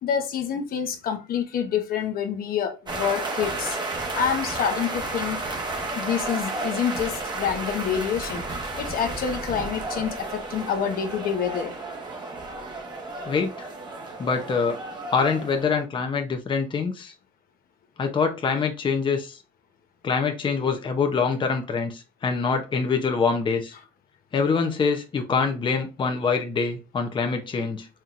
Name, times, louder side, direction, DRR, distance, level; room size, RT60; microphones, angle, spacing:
voice 1, 0.0-3.8 4.1-5.4 5.9-8.4 8.8-11.8, left 8 dB, 60° left, 1.0 m, -27 dB
sound 1, 2.9-15.8, right 2 dB, 25° right, 1.2 m, -32 dB
voice 2, 13.3-13.7 14.2-14.8 15.1-17.1 18.0-19.4 20.0-23.7 24.3-27.9, left 5 dB, 30° left, 0.8 m, -25 dB
4.3 x 3.5 x 2.5 m
cardioid pair, 110°, 17 cm